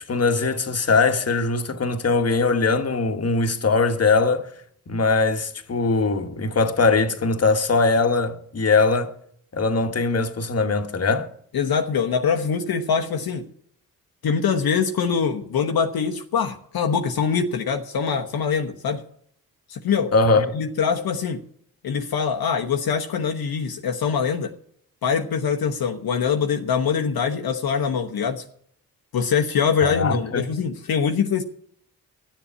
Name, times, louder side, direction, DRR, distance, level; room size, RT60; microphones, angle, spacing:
voice 1, 0.1-4.5 4.9-9.1 9.5-11.3 20.1-20.5 29.8-30.5, left 3 dB, 35° left, 1.5 m, -21 dB
voice 2, 11.5-13.5 14.2-19.0 19.7-20.1 20.5-21.4 21.8-24.5 25.0-28.4 29.1-31.4, left 6 dB, 60° left, 1.2 m, -23 dB
11.5 x 7.3 x 9.6 m
supercardioid pair, 45°, 41 cm